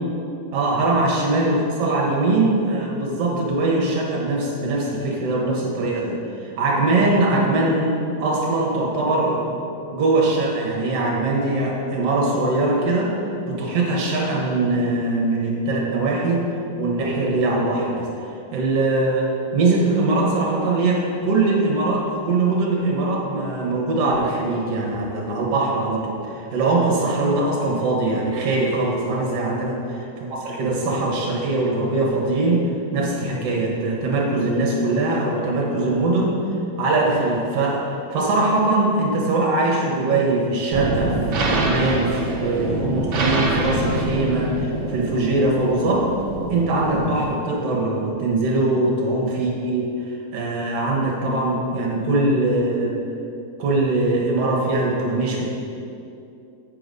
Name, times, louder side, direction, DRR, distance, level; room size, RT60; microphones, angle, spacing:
voice 1, 0.5-9.6 9.9-13.1 13.5-16.5 16.8-18.1 18.5-19.3 19.5-32.6 32.9-36.4 36.8-46.1 46.5-49.9 50.3-52.9 53.6-55.5, right 2 dB, 60° right, -2 dB, 2.0 m, -22 dB
sound 1, 40.7-47.3, right 1 dB, 75° right, 1.1 m, -25 dB
8.2 x 4.8 x 5.3 m, 2.7 s
omnidirectional pair, 3.7 m